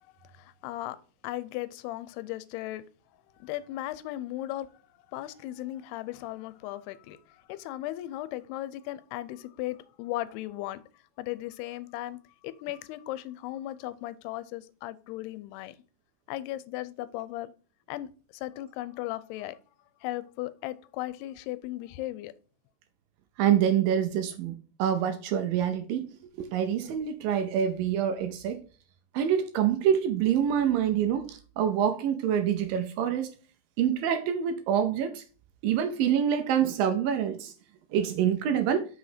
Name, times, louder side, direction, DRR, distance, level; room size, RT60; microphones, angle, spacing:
voice 1, 0.3-1.0 1.2-2.8 3.3-4.7 5.1-10.8 11.2-15.8 16.3-17.5 17.9-19.6 20.0-22.3, left 15 dB, 90° left, 2.6 m, -37 dB
voice 2, 23.4-28.6 29.1-33.3 33.8-35.2 35.6-37.5 37.9-38.9, right 9 dB, 80° right, 2.2 m, -26 dB
6.2 x 4.9 x 5.0 m
omnidirectional pair, 4.6 m